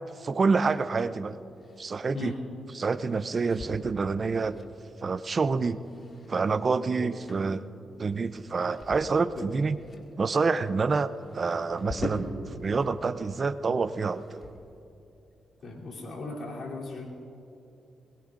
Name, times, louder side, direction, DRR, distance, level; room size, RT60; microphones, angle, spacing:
voice 1, 0.2-1.4 1.8-2.4 2.7-4.6 5.0-5.8 6.3-7.7 8.0-9.8 10.2-14.4, right 4 dB, 45° right, 14 dB, 0.6 m, -27 dB
sound 1, 0.6-12.9 13.2-14.8, left 2 dB, 40° left, 2.1 m, -44 dB
voice 2, 15.6-17.1, left 3 dB, 60° left, -3 dB, 3.2 m, -37 dB
21.5 x 21.0 x 2.6 m, 2.7 s
cardioid pair, 70°, 0 cm